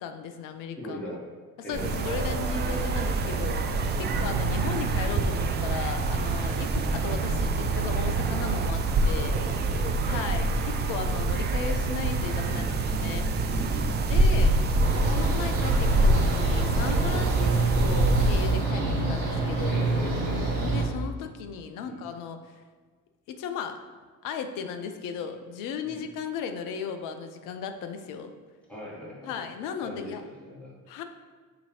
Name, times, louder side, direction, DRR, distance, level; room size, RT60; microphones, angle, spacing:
voice 1, 0.0-1.0 1.7-9.3 10.1-13.3 14.1-14.6 15.0-19.8 20.6-22.4 23.3-23.8 24.2-28.3 29.2-30.2 30.9-31.0, left 6 dB, 50° left, 7 dB, 0.5 m, -36 dB
voice 2, 0.8-1.2 1.6-2.1 2.6-2.9 4.0-4.2 9.1-10.3 12.5-12.7 13.4-14.1 19.7-20.4 21.8-22.0 25.8-26.0 28.7-29.4 29.8-30.7, left 1 dB, 5° left, -6 dB, 1.3 m, -40 dB
sound 1, 1.7-18.7, right 2 dB, 25° right, 0.3 m, -26 dB
sound 2, 14.8-20.8, right 2 dB, 80° right, 0.9 m, -27 dB
6.5 x 2.7 x 3.0 m, 1.5 s
figure-of-eight pair, 45°, 43 cm